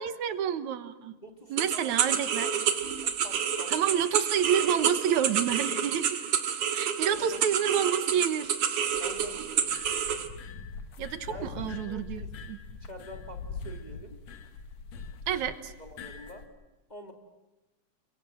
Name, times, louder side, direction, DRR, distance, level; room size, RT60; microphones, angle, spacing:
voice 1, 0.0-1.1 1.5-2.5 3.7-6.2 6.7-8.5 11.0-12.6 15.3-15.7, right 9 dB, 80° right, 12 dB, 2.5 m, -29 dB
voice 2, 1.2-2.7 3.0-3.9 7.1-7.5 9.0-9.9 11.3-12.3 12.8-14.2 15.3-15.5 15.8-16.5 16.9-17.1, right 1 dB, 15° left, 4 dB, 2.1 m, -46 dB
sound 1, 1.6-10.3, right 7 dB, 60° right, 2.7 m, -29 dB
sound 2, 8.8-16.5, left 4 dB, 70° left, 2.7 m, -43 dB
30.0 x 23.0 x 7.6 m, 0.99 s
omnidirectional pair, 3.3 m